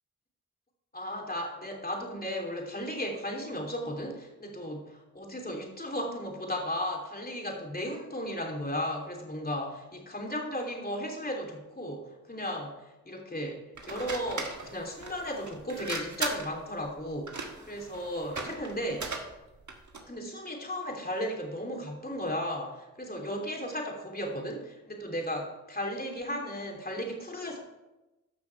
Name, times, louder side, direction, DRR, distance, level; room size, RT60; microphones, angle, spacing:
voice 1, 0.9-19.3 20.1-27.6, equal, 30° left, 1 dB, 3.1 m, -35 dB
sound 1, 13.8-20.1, right 3 dB, 65° right, 1.7 m, -39 dB
13.5 x 6.2 x 4.7 m, 1.0 s
cardioid pair, 40°, 31 cm